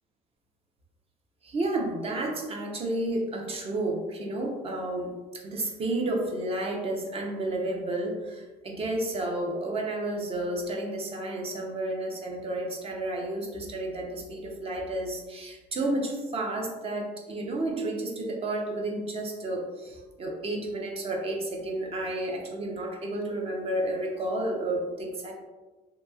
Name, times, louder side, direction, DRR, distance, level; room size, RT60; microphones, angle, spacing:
voice 1, 1.4-25.4, right 1 dB, 35° right, 1 dB, 0.6 m, -31 dB
2.9 x 2.7 x 2.3 m, 1.2 s
cardioid pair, 110°, 17 cm